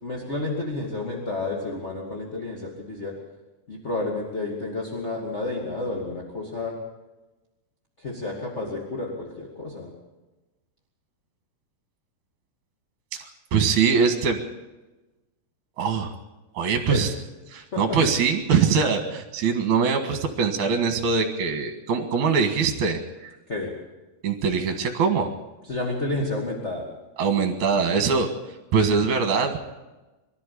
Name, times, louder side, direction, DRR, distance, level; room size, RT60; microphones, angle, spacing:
voice 1, 0.0-3.2 3.7-6.8 8.0-9.9 16.9-17.0 17.7-18.3 23.5-23.7 25.7-26.8, left 2 dB, 25° left, -2 dB, 1.8 m, -30 dB
voice 2, 13.1-14.4 15.8-16.1 16.5-17.1 17.5-23.3 24.2-25.3 27.2-28.3 28.7-29.6, right 5 dB, 55° right, 6 dB, 2.6 m, -23 dB
24.0 x 13.0 x 8.4 m, 1.1 s
omnidirectional pair, 4.7 m